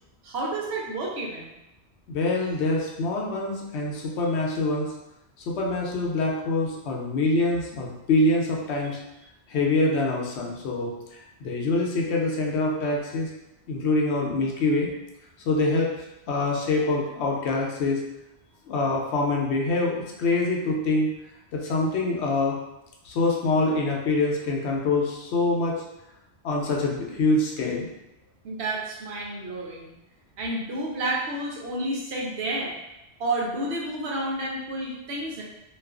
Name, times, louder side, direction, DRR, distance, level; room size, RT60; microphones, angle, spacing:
voice 1, 0.2-1.5 28.4-29.9 30.4-32.7 33.2-35.4, right 2 dB, 75° right, -3 dB, 0.8 m, -30 dB
voice 2, 2.1-4.9 5.5-9.0 9.5-10.9 11.4-13.3 13.7-14.9 15.5-15.9 16.3-18.0 18.7-21.1 21.5-22.5 23.0-25.7 26.4-27.9, left 2 dB, 75° left, -1 dB, 0.8 m, -25 dB
2.4 x 2.3 x 2.3 m, 0.91 s
omnidirectional pair, 1.1 m